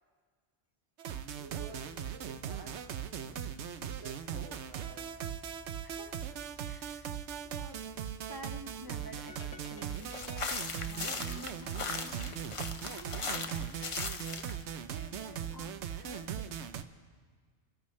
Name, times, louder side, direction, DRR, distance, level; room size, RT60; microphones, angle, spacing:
sound 1, 1.0-16.8, right 8 dB, 80° right, 1.0 m, -39 dB
voice 1, 1.3-2.7 3.8-5.4, right 4 dB, 60° right, -2 dB, 1.4 m, -51 dB
voice 2, 5.8-6.3 6.7-7.1 7.4-10.4 10.8-12.4 12.8-13.8 14.8-16.6, right 1 dB, 25° right, 3 dB, 0.6 m, -50 dB
sound 2, 9.3-12.7, left 4 dB, 65° left, 1.2 m, -54 dB
sound 3, 9.9-14.6, left 4 dB, 35° left, 0.6 m, -39 dB
26.5 x 14.0 x 3.2 m, 1.5 s
omnidirectional pair, 1.2 m